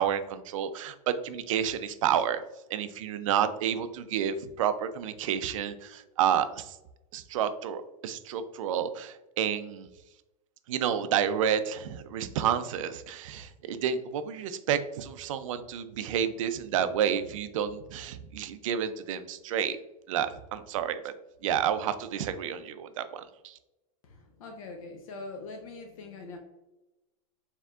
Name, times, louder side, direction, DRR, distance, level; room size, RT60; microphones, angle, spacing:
voice 1, 0.0-2.4 2.7-6.8 7.1-9.9 10.7-19.8 20.1-21.1 21.4-23.6, right 9 dB, 60° right, 11 dB, 0.4 m, -30 dB
voice 2, 24.0-26.4, left 3 dB, 65° left, 3 dB, 0.7 m, -43 dB
4.5 x 3.6 x 2.4 m, 0.99 s
supercardioid pair, 175°, 19 cm